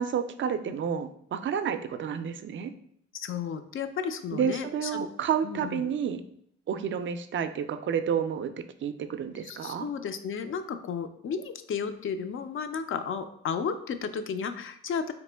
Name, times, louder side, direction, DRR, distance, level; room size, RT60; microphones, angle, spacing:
voice 1, 0.0-2.7 4.3-6.2 6.7-8.5 8.8-9.9, right 7 dB, 40° right, 10 dB, 0.4 m, -30 dB
voice 2, 3.1-5.1 5.4-5.8 9.4-15.1, left 6 dB, 45° left, 10 dB, 0.4 m, -33 dB
3.5 x 2.9 x 3.3 m, 0.67 s
cardioid pair, 90°, 30 cm